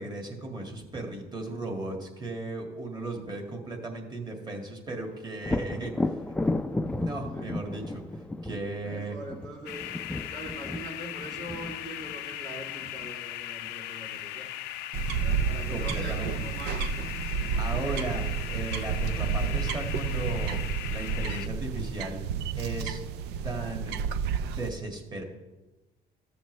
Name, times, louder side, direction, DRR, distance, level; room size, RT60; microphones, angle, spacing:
voice 1, 0.0-6.3 7.0-8.0 8.4-9.2 15.7-16.3 17.6-20.6 20.9-22.2 22.6-23.0 23.4-24.0 24.5-25.2, right 2 dB, 25° right, 2 dB, 1.8 m, -36 dB
Thunder, 5.4-13.1 16.7-16.8 17.3-18.2, left 2 dB, 5° left, 0.4 m, -34 dB
voice 2, 8.8-9.9 10.2-14.5 15.2-17.9, right 1 dB, 55° right, -3 dB, 3.1 m, -43 dB
sound 1, 9.7-21.5, left 14 dB, 90° left, 0.5 m, -39 dB
sound 2, 14.9-24.7, right 6 dB, 80° right, 0.4 m, -31 dB
14.0 x 7.0 x 3.2 m, 1.1 s
cardioid pair, 110°, 17 cm